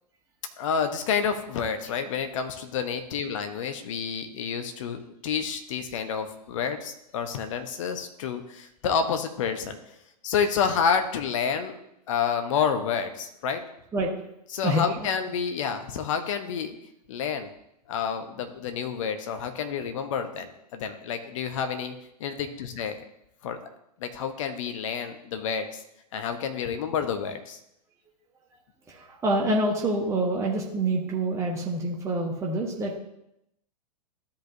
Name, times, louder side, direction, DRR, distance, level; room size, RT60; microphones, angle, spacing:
voice 1, 0.6-9.8 10.2-11.8 12.1-13.6 14.5-16.8 17.1-17.5 17.9-21.9 22.2-23.0 23.4-23.6 24.0-25.8 26.1-27.6, left 6 dB, 50° left, 7 dB, 1.0 m, -29 dB
voice 2, 14.6-15.1 28.9-33.0, right 1 dB, 15° right, -2 dB, 1.2 m, -26 dB
13.0 x 5.2 x 2.7 m, 0.81 s
figure-of-eight pair, 105°, 21 cm